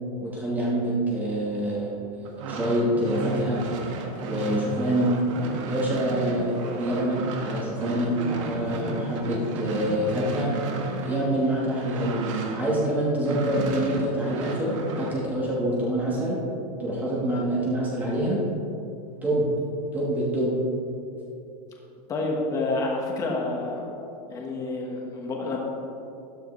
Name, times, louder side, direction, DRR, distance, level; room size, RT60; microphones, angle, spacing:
voice 1, 0.2-3.6 4.2-5.1 5.6-10.5 11.0-12.1 12.5-16.4 16.8-18.4 19.2-19.5 19.9-20.6, right 1 dB, 10° right, -5 dB, 1.3 m, -26 dB
sound 1, 2.2-12.9 13.2-15.2, right 2 dB, 50° right, 1.5 m, -33 dB
voice 2, 22.1-23.8 24.3-25.6, left 2 dB, 15° left, -1 dB, 1.4 m, -28 dB
12.5 x 12.5 x 3.2 m, 2.7 s
supercardioid pair, 180°, 20 cm